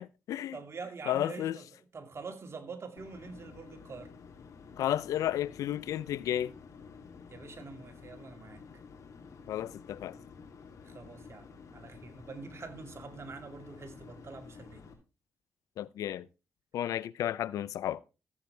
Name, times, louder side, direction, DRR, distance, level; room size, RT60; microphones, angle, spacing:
voice 1, 0.0-0.6 1.1-1.6 4.8-6.5 9.5-10.2 15.8-16.3 16.7-18.0, left 11 dB, 90° left, 0.5 m, -32 dB
voice 2, 0.5-4.1 7.3-8.6 10.8-14.8, right 4 dB, 50° right, 2.4 m, -45 dB
sound 1, 3.0-14.9, left 5 dB, 70° left, 2.7 m, -51 dB
14.0 x 8.0 x 3.3 m
cardioid pair, 55°, 6 cm